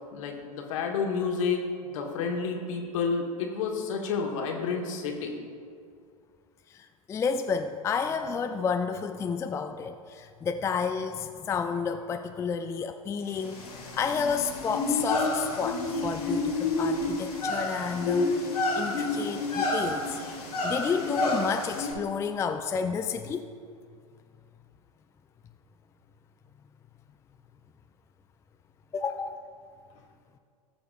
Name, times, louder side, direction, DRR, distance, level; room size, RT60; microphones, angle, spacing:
voice 1, 0.1-5.3, left 5 dB, 60° left, 2 dB, 1.6 m, -30 dB
voice 2, 6.7-13.7 13.9-18.5 18.8-23.5 28.9-29.4, left 6 dB, 15° left, 7 dB, 0.4 m, -31 dB
sound 1, 13.4-21.9, left 2 dB, 80° left, 1.9 m, -29 dB
18.0 x 6.7 x 2.5 m, 2.2 s
figure-of-eight pair, 90°, 19 cm